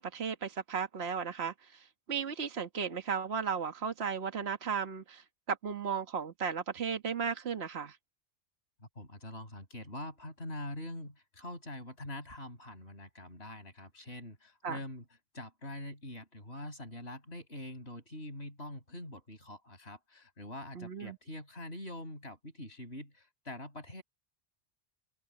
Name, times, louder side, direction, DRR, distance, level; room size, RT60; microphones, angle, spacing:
voice 1, 0.0-1.5 2.1-5.2 5.5-8.0 14.6-14.8 20.8-21.1, right 6 dB, 65° right, 1.7 m, -35 dB
voice 2, 8.8-15.1 15.3-24.0, left 1 dB, 65° left, 6.8 m, -44 dB
open air
omnidirectional pair, 1.2 m